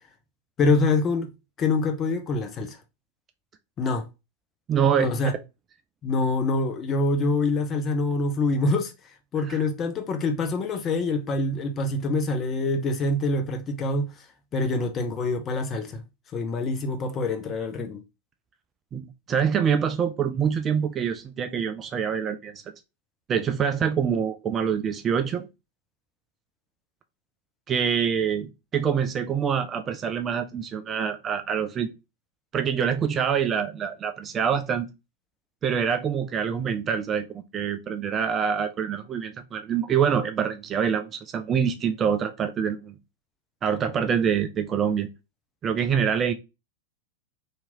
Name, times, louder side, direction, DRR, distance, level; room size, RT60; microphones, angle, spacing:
voice 1, 0.6-1.3 1.6-2.8 3.8-4.1 5.0-5.3 6.0-8.9 9.3-14.1 14.5-16.0 16.3-18.0, left 2 dB, 25° left, 0.7 m, -25 dB
voice 2, 4.7-5.1 9.5-9.6 18.9-22.6 23.3-25.5 27.7-31.9 32.5-34.9 35.6-43.0 43.6-45.1 45.6-46.3, right 7 dB, 25° right, 0.4 m, -25 dB
2.9 x 2.7 x 3.5 m
figure-of-eight pair, 90°, 0 cm